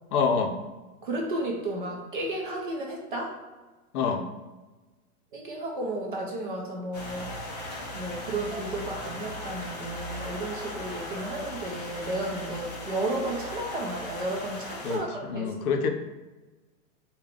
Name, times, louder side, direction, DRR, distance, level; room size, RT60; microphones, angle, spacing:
voice 1, 0.1-0.6 3.9-4.3 14.8-15.9, left 5 dB, 75° left, 6 dB, 0.6 m, -26 dB
voice 2, 1.0-3.3 5.3-7.5 7.9-15.8, right 2 dB, 35° right, -1 dB, 0.5 m, -33 dB
sound 1, 6.9-15.0, left 1 dB, 30° left, 0.4 m, -38 dB
3.4 x 2.3 x 3.6 m, 1.2 s
hypercardioid pair, 165°, 45 cm